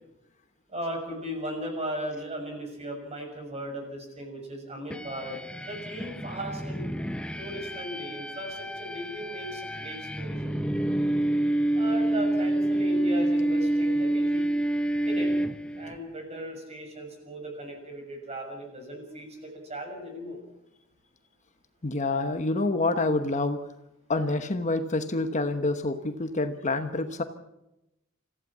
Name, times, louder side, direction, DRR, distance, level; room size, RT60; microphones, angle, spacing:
voice 1, 0.7-6.9 7.4-10.6 11.7-14.5 15.0-15.3 15.7-20.4, equal, 30° right, 3 dB, 6.6 m, -37 dB
sound 1, 4.9-16.0, right 1 dB, 5° left, 0.8 m, -28 dB
voice 2, 21.8-23.6 24.1-27.2, left 2 dB, 35° left, 8 dB, 1.1 m, -27 dB
26.5 x 15.0 x 7.4 m, 0.90 s
head